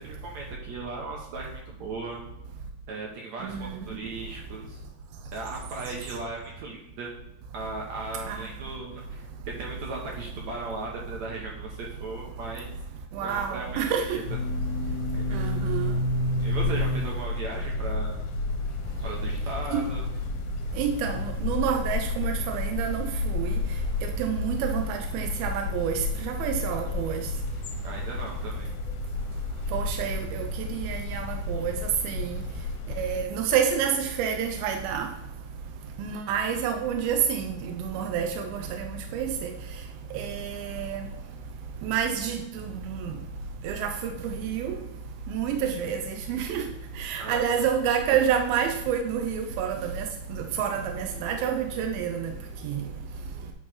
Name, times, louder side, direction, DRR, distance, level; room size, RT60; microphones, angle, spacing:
voice 1, 0.0-2.2 2.9-4.8 5.3-7.1 7.5-12.7 13.2-13.8 14.1-14.2 15.1-15.4 16.4-18.2 19.0-20.1 27.8-28.7 47.2-47.6, right 3 dB, 65° right, 1.9 m, -37 dB
voice 2, 3.4-3.8 8.3-8.4 13.2-14.2 15.3-15.9 19.7-19.9 20.8-23.1 23.3-23.5 24.2-27.2 29.7-30.5 30.7-31.8 32.0-32.4 33.0-35.1 36.0-39.5 40.1-41.0 41.8-43.1 43.6-44.8 45.3-46.0 46.3-46.7 47.0-50.1 50.3-52.3 52.6-52.8, right 8 dB, 85° right, 2.5 m, -28 dB
sound 1, 14.2-33.2, left 2 dB, 80° left, 2.7 m, -31 dB
9.5 x 3.2 x 5.7 m
omnidirectional pair, 4.2 m